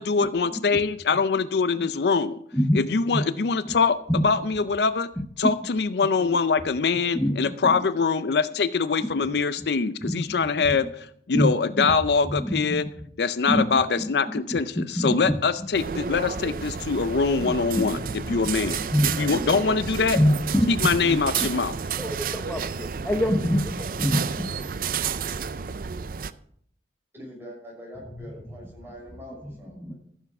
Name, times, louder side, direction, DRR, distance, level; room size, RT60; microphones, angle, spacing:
voice 1, 0.0-2.4 2.7-4.0 4.2-5.1 5.4-12.9 13.2-18.8 19.2-20.2 20.7-21.7, left 5 dB, 65° left, 13 dB, 0.5 m, -23 dB
voice 2, 5.2-5.5 6.2-6.3 7.1-7.3 7.6-7.7 9.0-9.3 10.0-10.8 11.3-11.9 12.3-12.9 13.5-14.1 14.5-15.7 17.4-18.4 18.8-19.3 20.2-21.5 22.0-24.5 29.8-29.9, equal, 10° left, 4 dB, 0.8 m, -26 dB
voice 3, 6.9-7.5 8.5-8.7 18.7-19.7 22.2-22.5 27.1-29.9, equal, 15° right, -2 dB, 5.5 m, -45 dB
sound 1, 15.7-26.3, right 6 dB, 50° right, 0.5 m, -31 dB
14.5 x 7.3 x 5.9 m, 0.66 s
head